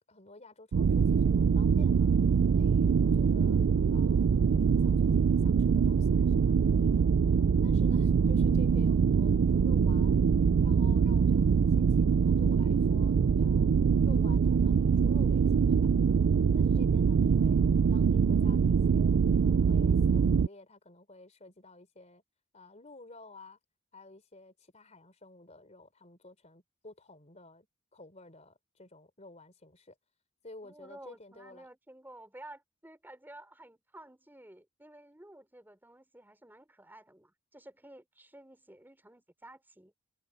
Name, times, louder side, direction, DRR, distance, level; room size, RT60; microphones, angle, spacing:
voice 1, 0.0-2.1 2.5-3.6 3.9-7.1 7.6-10.2 10.6-15.8 16.5-17.6 17.9-19.1 19.4-22.2 22.5-23.6 23.9-27.7 27.9-30.0 30.4-31.7, left 2 dB, 35° left, 3.7 m, -52 dB
sound 1, 0.7-20.5, right 6 dB, 70° right, 0.4 m, -24 dB
voice 2, 30.6-39.9, right 1 dB, 10° right, 3.5 m, -52 dB
head